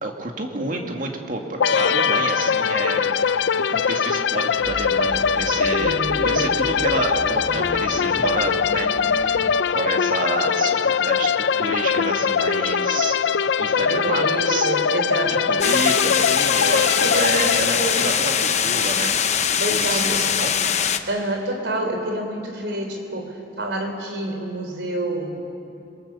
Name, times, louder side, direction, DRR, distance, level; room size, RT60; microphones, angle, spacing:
voice 1, 0.0-3.1 3.6-13.2 13.6-14.7 15.2-19.2 19.7-20.5, right 2 dB, 50° right, 2 dB, 2.4 m, -29 dB
sound 1, 1.6-19.2, left 6 dB, 90° left, 0.5 m, -22 dB
sound 2, 4.6-9.6, equal, 10° right, 1.3 m, -36 dB
voice 2, 5.8-6.5 13.8-15.5 16.6-18.1 19.6-20.3 21.1-25.4, right 1 dB, 85° right, 3 dB, 3.6 m, -28 dB
sound 3, 15.6-21.0, left 8 dB, 40° left, 0.9 m, -22 dB
26.0 x 23.0 x 7.1 m, 2.7 s
head